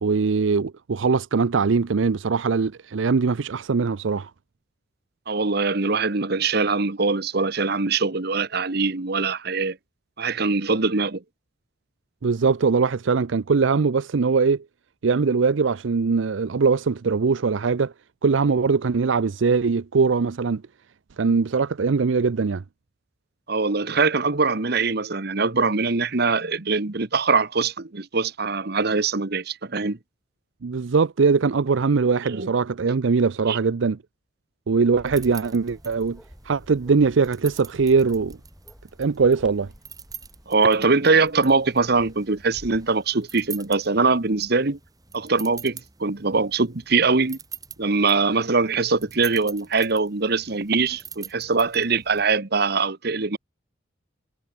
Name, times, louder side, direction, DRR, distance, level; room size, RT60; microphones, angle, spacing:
voice 1, 0.0-4.3 12.2-14.6 15.0-17.9 18.2-20.6 21.2-22.6 30.6-34.0 34.7-36.2 36.4-38.4 39.0-39.7, right 4 dB, 75° right, 0.5 m, -21 dB
voice 2, 5.3-9.8 10.2-11.2 23.5-30.0 32.2-32.5 33.5-33.6 40.5-44.8 45.1-47.4 47.8-53.4, right 4 dB, 55° right, 1.2 m, -22 dB
Bark, 34.9-42.9, equal, 5° right, 7.8 m, -49 dB
sound 1, 35.0-52.3, right 6 dB, 20° right, 4.1 m, -45 dB
head